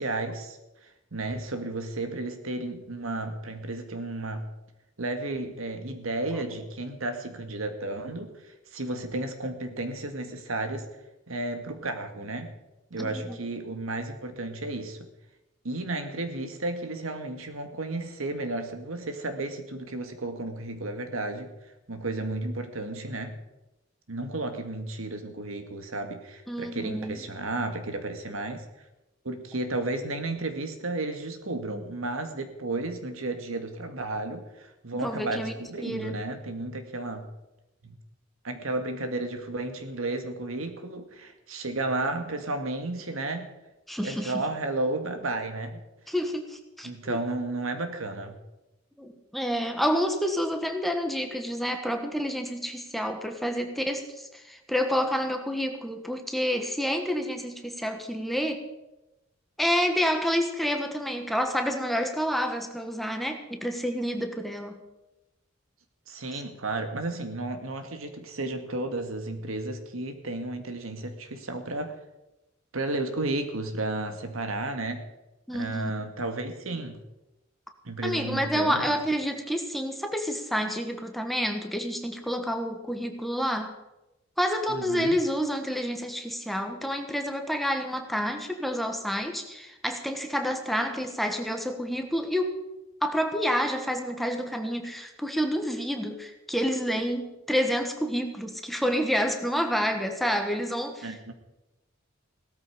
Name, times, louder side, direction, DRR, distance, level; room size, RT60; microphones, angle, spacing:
voice 1, 0.0-4.5 5.0-10.9 11.3-12.5 12.9-15.0 15.6-21.5 21.9-23.3 24.1-28.6 29.2-37.3 37.8-38.0 38.4-43.5 44.0-45.8 46.8-48.4 66.1-72.0 72.7-75.1 75.5-77.0 77.8-79.0 84.7-85.2 101.0-101.3, right 2 dB, 80° right, 7 dB, 1.9 m, -33 dB
voice 2, 13.0-13.4 26.5-27.2 35.0-35.5 35.8-36.2 43.9-44.4 46.1-47.2 49.0-58.6 59.6-64.8 75.5-75.9 78.0-83.8 84.4-92.6 93.0-101.1, equal, ahead, 5 dB, 1.4 m, -29 dB
17.0 x 13.0 x 5.1 m, 0.97 s
head